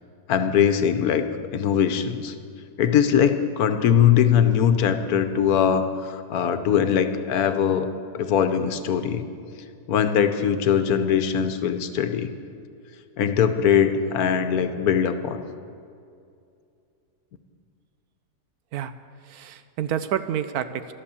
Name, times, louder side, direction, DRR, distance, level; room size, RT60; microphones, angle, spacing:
voice 1, 0.3-1.2 1.5-2.3 2.8-9.3 9.9-12.3 13.2-15.4, left 8 dB, 75° left, 9 dB, 1.3 m, -21 dB
voice 2, 19.3-20.9, right 9 dB, 80° right, 11 dB, 1.2 m, -28 dB
13.5 x 12.5 x 7.0 m, 2.4 s
omnidirectional pair, 1.6 m